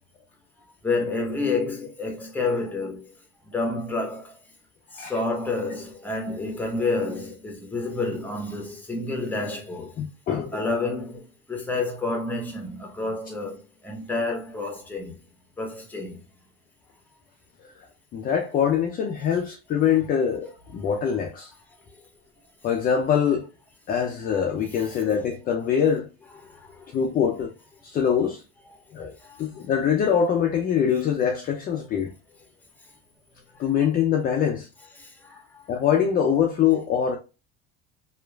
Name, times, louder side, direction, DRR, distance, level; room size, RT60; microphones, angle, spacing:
voice 1, 0.8-3.0 3.5-4.3 4.9-9.9 10.5-15.2 15.6-16.2 26.4-26.9 29.3-29.4 35.0-35.4, left 3 dB, 5° left, 0.7 m, -29 dB
voice 2, 10.0-10.6 18.1-21.5 22.6-23.5 23.9-26.1 26.9-27.5 27.8-28.4 28.9-32.1 33.6-34.7 35.7-37.2, left 8 dB, 30° left, 0.4 m, -23 dB
2.8 x 2.4 x 2.2 m
supercardioid pair, 105°, 31 cm